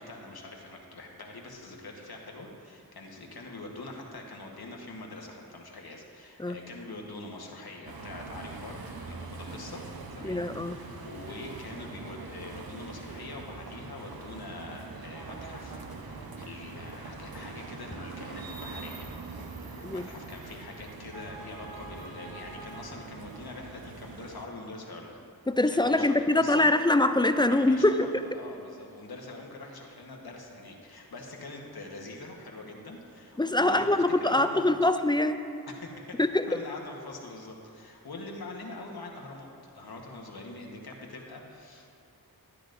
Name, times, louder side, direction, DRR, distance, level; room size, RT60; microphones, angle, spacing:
voice 1, 0.0-19.1 19.6-25.2 25.6-26.7 27.5-34.6 35.7-36.2 36.5-42.0, left 2 dB, 75° left, 0 dB, 1.2 m, -44 dB
sound 1, 7.9-24.5, right 3 dB, 70° right, 0.8 m, -43 dB
voice 2, 10.2-10.8 19.8-20.1 25.5-28.1 33.4-35.4 36.2-36.5, left 1 dB, 15° left, 10 dB, 0.3 m, -24 dB
11.5 x 9.8 x 2.5 m, 2.6 s
wide cardioid pair, 50°, 37 cm